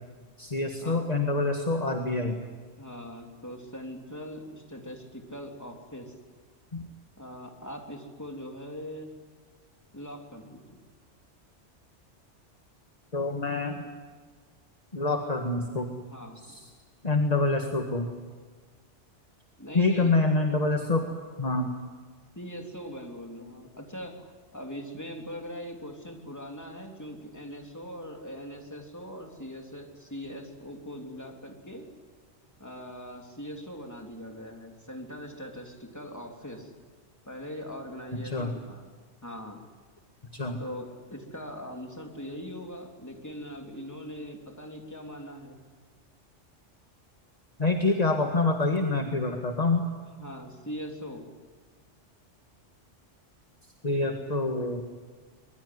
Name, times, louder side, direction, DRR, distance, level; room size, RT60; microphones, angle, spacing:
voice 1, 0.4-2.4 6.7-6.9 13.1-13.8 14.9-15.9 16.5-16.6 17.0-18.1 19.7-21.1 21.4-21.7 38.2-38.5 40.3-40.6 47.6-49.9 53.8-54.8, left 2 dB, 35° left, 3 dB, 1.9 m, -26 dB
voice 2, 2.8-6.1 7.2-9.1 9.9-10.8 16.1-16.6 19.6-20.2 22.4-31.9 32.6-36.7 37.3-38.8 39.2-39.6 40.6-45.6 50.2-51.3, equal, 15° left, 1 dB, 3.5 m, -41 dB
24.5 x 22.0 x 9.7 m, 1.5 s
omnidirectional pair, 1.2 m